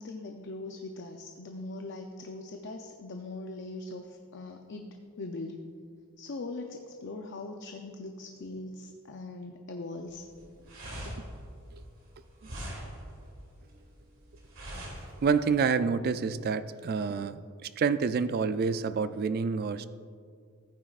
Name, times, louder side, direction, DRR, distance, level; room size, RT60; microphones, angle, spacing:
voice 1, 0.0-5.7 6.2-10.2, left 2 dB, 55° left, 4 dB, 0.5 m, -41 dB
sound 1, 10.1-15.6, equal, 60° right, 2.4 m, -42 dB
voice 2, 15.2-19.9, right 5 dB, 45° right, 13 dB, 0.3 m, -28 dB
14.5 x 9.2 x 2.4 m, 2.2 s
head